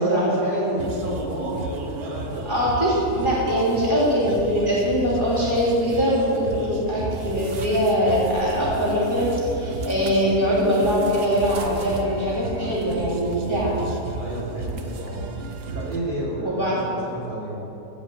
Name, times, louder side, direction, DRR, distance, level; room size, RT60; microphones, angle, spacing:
voice 1, 0.0-2.5 14.2-15.2 15.7-17.6, right 1 dB, 30° right, -8 dB, 3.1 m, -30 dB
sound 1, 0.8-16.0, right 3 dB, 50° right, 0.8 m, -33 dB
voice 2, 2.5-13.7 16.4-16.8, equal, 15° left, -8 dB, 2.4 m, -22 dB
15.5 x 5.3 x 7.6 m, 3.0 s
omnidirectional pair, 1.8 m